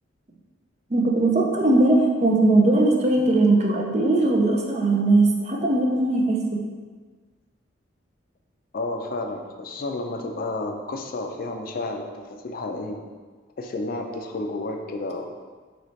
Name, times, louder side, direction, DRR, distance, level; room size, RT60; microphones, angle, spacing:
voice 1, 0.9-6.6, right 2 dB, 35° right, 1 dB, 0.5 m, -19 dB
voice 2, 8.7-13.1 13.6-15.4, left 2 dB, 45° left, 4 dB, 0.4 m, -31 dB
4.1 x 3.2 x 3.1 m, 1.5 s
head